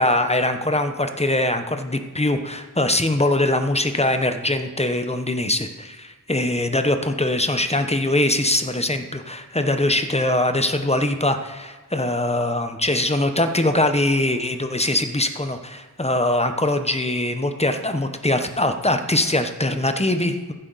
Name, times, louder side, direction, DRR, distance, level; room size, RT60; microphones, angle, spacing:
voice 1, 0.0-20.5, left 1 dB, 15° left, 8 dB, 0.8 m, -22 dB
15.0 x 7.8 x 4.0 m, 1.2 s
wide cardioid pair, 65°, 38 cm